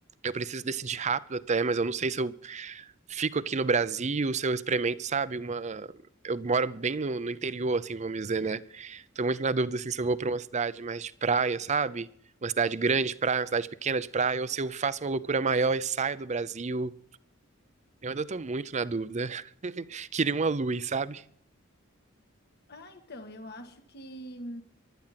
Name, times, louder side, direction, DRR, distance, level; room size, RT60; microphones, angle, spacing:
voice 1, 0.2-2.8 3.1-5.9 6.2-12.1 12.4-16.9 18.0-21.2, right 4 dB, 35° right, 0.6 m, -29 dB
voice 2, 22.7-24.6, equal, 55° left, 1.5 m, -43 dB
16.0 x 12.0 x 5.8 m
head